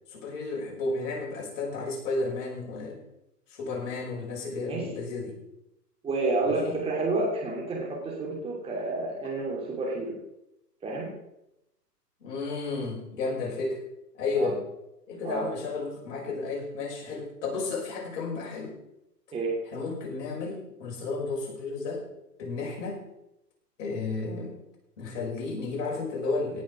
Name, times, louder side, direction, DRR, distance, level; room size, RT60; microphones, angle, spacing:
voice 1, 0.1-3.0 3.5-5.4 6.4-6.8 12.2-13.8 14.1-14.6 15.1-18.8 19.7-22.0 22.4-23.0 23.8-24.5 25.0-26.6, left 3 dB, 50° left, -1 dB, 5.8 m, -32 dB
voice 2, 6.0-10.2 10.8-11.1 14.4-14.6 15.2-15.5 19.3-19.6, right 2 dB, 10° right, -2 dB, 2.8 m, -30 dB
17.5 x 6.3 x 6.2 m, 0.85 s
hypercardioid pair, 135°, 49 cm